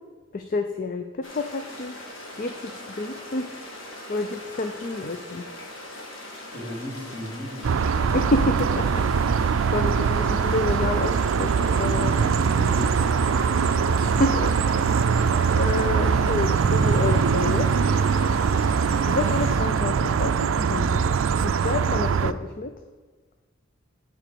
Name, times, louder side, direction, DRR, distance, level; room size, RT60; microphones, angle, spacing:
voice 1, 0.3-1.9 2.4-3.5 4.1-5.4 8.1-12.2 14.0-14.5 15.5-17.7 19.1-21.0 21.4-22.7, left 3 dB, 45° left, 7 dB, 0.5 m, -29 dB
sound 1, 1.2-19.6, left 1 dB, 75° left, 2.1 m, -40 dB
voice 2, 6.5-7.8 12.2-13.6, equal, 25° left, -4 dB, 2.6 m, -36 dB
sound 2, 7.6-22.3, right 6 dB, 75° right, 0.4 m, -22 dB
9.0 x 4.8 x 6.8 m, 1.4 s
head